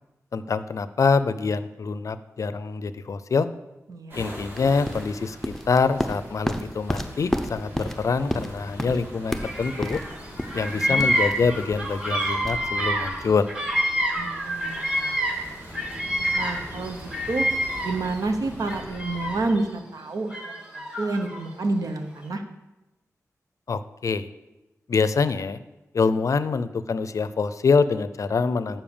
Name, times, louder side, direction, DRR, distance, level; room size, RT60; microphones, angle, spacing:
voice 1, 0.3-3.5 4.1-5.4 5.7-10.0 10.5-13.5 23.7-24.3 24.9-25.6 25.9-28.8, left 4 dB, 65° left, 13 dB, 0.4 m, -25 dB
voice 2, 3.9-4.2 10.7-11.1 14.2-15.5 15.8-15.9 16.3-17.5 17.8-22.4, right 3 dB, 85° right, 6 dB, 0.9 m, -30 dB
sound 1, 4.1-19.5, equal, 35° right, 2.7 m, -42 dB
sound 2, 4.5-13.3, equal, 5° left, 0.6 m, -32 dB
Bird vocalization bird call bird song, 9.4-10.1 10.4-15.5 15.7-18.1 18.6-19.6 20.3-21.4, equal, 15° right, 1.6 m, -27 dB
7.1 x 5.5 x 7.0 m, 1.0 s
wide cardioid pair, 100°, 6 cm